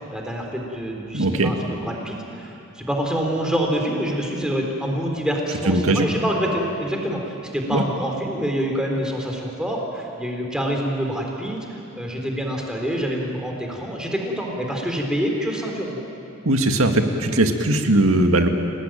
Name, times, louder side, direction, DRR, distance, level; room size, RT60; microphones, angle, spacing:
voice 1, 0.1-16.0, equal, 5° right, 0 dB, 3.9 m, -26 dB
voice 2, 1.1-1.5 5.7-6.1 7.7-7.8 16.5-18.5, right 1 dB, 85° right, 5 dB, 2.1 m, -19 dB
29.5 x 18.0 x 9.2 m, 2.8 s
head